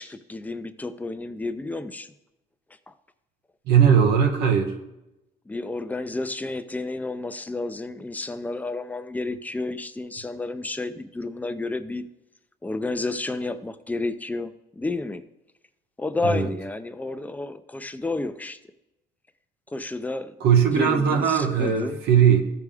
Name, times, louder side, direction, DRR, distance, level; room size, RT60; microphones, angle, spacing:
voice 1, 0.0-2.1 2.9-3.0 5.5-12.1 12.6-15.2 16.0-18.6 19.7-20.4 20.7-22.0, left 2 dB, 10° left, 10 dB, 0.5 m, -31 dB
voice 2, 3.7-4.7 16.2-16.5 20.4-22.4, right 7 dB, 80° right, 4 dB, 1.4 m, -19 dB
14.5 x 4.8 x 3.5 m, 0.93 s
cardioid pair, 110°, 17 cm